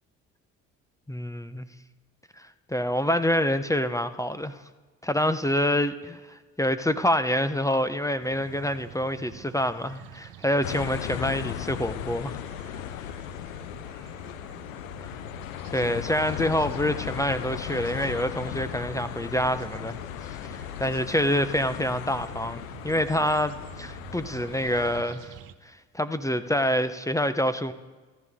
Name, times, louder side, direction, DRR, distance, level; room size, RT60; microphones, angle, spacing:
voice 1, 1.1-1.7 2.4-4.6 5.0-12.4 12.7-13.0 15.7-25.3 25.6-27.7, equal, 10° left, 11 dB, 1.0 m, -27 dB
sound 1, 8.2-25.5, right 11 dB, 60° right, 1.2 m, -47 dB
sound 2, 10.6-25.0, left 13 dB, 80° left, 0.7 m, -37 dB
28.5 x 12.5 x 3.8 m, 1.3 s
hypercardioid pair, 55°, 40 cm